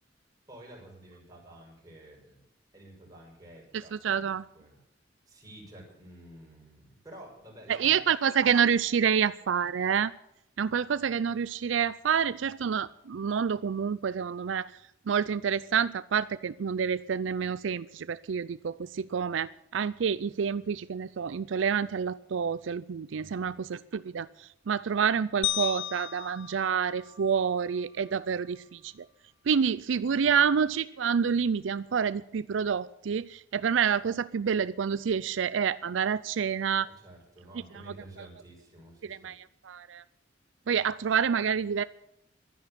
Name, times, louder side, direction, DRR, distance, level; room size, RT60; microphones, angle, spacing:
voice 1, 0.5-2.4 2.7-4.8 5.3-8.1 23.1-23.5 30.2-30.4 36.8-39.3, right 1 dB, 20° right, -2 dB, 5.6 m, -51 dB
voice 2, 3.9-4.4 7.7-10.1 10.6-14.7 15.1-24.3 24.7-28.9 29.5-36.9 39.1-39.4 39.7-40.0 40.7-41.8, right 7 dB, 85° right, 16 dB, 0.4 m, -28 dB
sound 1, 25.4-27.8, left 12 dB, 75° left, 0.6 m, -35 dB
12.5 x 10.0 x 8.6 m, 0.77 s
head